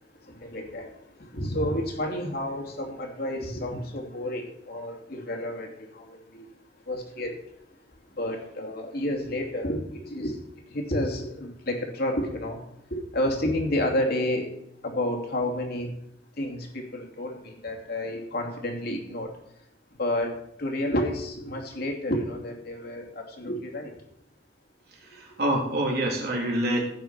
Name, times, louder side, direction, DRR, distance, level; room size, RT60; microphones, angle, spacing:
voice 1, 0.3-0.9 1.3-6.1 6.3-6.4 6.9-7.4 8.2-10.4 10.7-12.6 12.9-14.5 14.8-15.9 16.4-19.3 20.0-20.3 20.6-23.9, left 1 dB, 55° left, 1 dB, 2.7 m, -30 dB
voice 2, 25.0-26.8, right 1 dB, 60° right, -1 dB, 3.3 m, -26 dB
15.5 x 5.5 x 5.9 m, 0.77 s
head